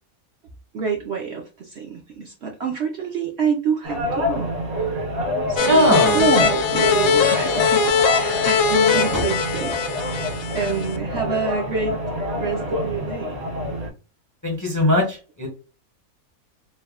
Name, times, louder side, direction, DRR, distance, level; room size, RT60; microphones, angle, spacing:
voice 1, 0.7-4.9 5.5-7.9 8.2-9.8 10.0-12.0 12.4-13.3, right 5 dB, 60° right, 0 dB, 0.7 m, -27 dB
sound 1, 3.8-13.9, left 1 dB, 85° right, 1.6 m, -27 dB
sound 2, 5.6-11.0, left 6 dB, 75° left, 1.0 m, -21 dB
voice 2, 5.6-6.2 9.1-9.2 14.4-15.5, left 1 dB, 20° left, 0 dB, 0.6 m, -19 dB
3.3 x 2.2 x 2.2 m, 0.33 s
omnidirectional pair, 1.5 m